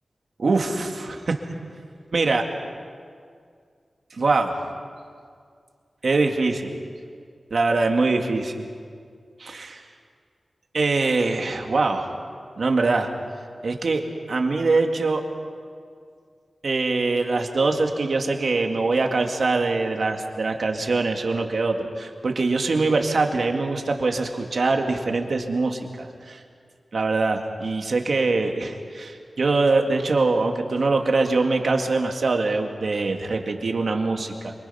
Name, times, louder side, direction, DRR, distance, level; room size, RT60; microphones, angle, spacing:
voice 1, 0.4-1.4 2.1-2.4 4.1-4.5 6.0-6.7 7.5-8.6 9.4-9.8 10.7-12.1 12.6-13.1 13.6-14.0 14.3-15.2 16.6-26.4 26.9-34.5, right 3 dB, 65° right, 3 dB, 2.1 m, -23 dB
27.0 x 24.0 x 5.7 m, 2.1 s
wide cardioid pair, 115°, 0 cm